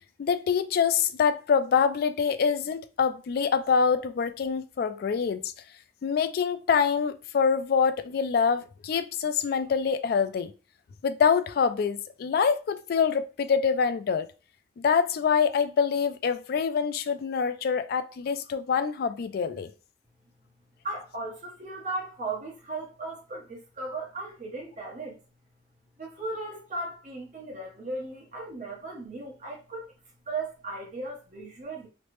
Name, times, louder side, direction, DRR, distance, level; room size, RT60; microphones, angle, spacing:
voice 1, 0.2-5.5 6.0-10.5 11.0-14.3 14.8-19.7, left 6 dB, 60° left, 0.3 m, -25 dB
voice 2, 20.8-25.2 26.0-29.9 30.3-31.9, right 2 dB, 45° right, 1.0 m, -36 dB
3.1 x 2.0 x 3.0 m
head